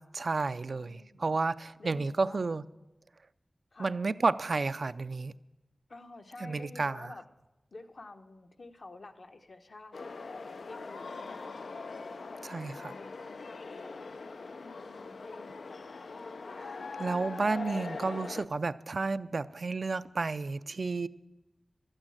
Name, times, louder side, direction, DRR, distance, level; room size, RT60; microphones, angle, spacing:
voice 1, 0.0-2.6 3.8-5.3 6.4-7.1 12.4-12.9 16.6-21.1, right 3 dB, 60° right, 13 dB, 0.4 m, -32 dB
voice 2, 0.7-1.2 1.8-2.5 3.7-3.9 5.9-7.3 7.7-10.0 10.6-12.4 12.8-14.3 14.6-15.9 17.3-17.5, left 2 dB, 60° left, 5 dB, 1.0 m, -50 dB
sound 1, 9.9-18.5, left 4 dB, 90° left, 0.5 m, -42 dB
13.0 x 8.9 x 8.7 m, 1.0 s
wide cardioid pair, 100°, 0 cm